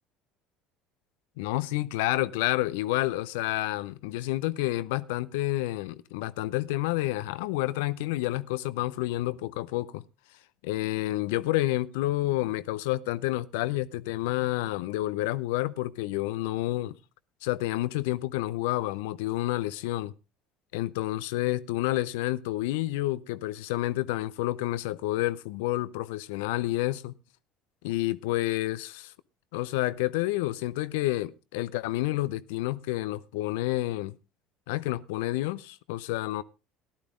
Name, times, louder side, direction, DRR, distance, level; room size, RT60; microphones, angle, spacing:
voice 1, 1.4-10.0 10.6-17.0 17.4-20.1 20.7-27.1 27.8-29.1 29.5-34.2 34.7-36.4, left 17 dB, 75° left, 0.5 m, -29 dB
14.5 x 11.5 x 3.6 m
hypercardioid pair, 70°, 0 cm